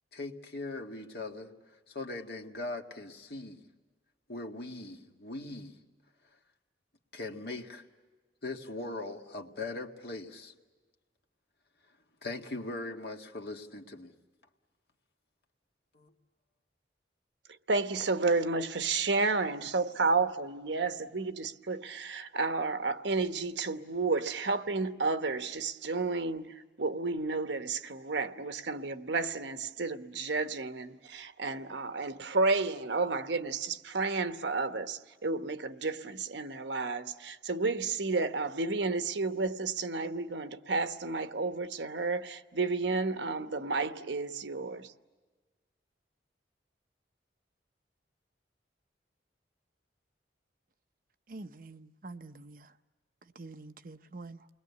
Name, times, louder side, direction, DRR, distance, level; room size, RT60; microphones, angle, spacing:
voice 1, 0.1-1.5 1.9-3.6 4.3-5.8 7.1-7.8 8.4-10.5 12.2-14.1 15.9-16.1, left 2 dB, 60° left, 1.9 m, -40 dB
voice 2, 17.7-44.9, right 3 dB, 75° right, 1.1 m, -31 dB
voice 3, 51.3-52.8 53.2-54.5, right 3 dB, 50° right, 0.8 m, -47 dB
29.5 x 21.5 x 8.4 m
head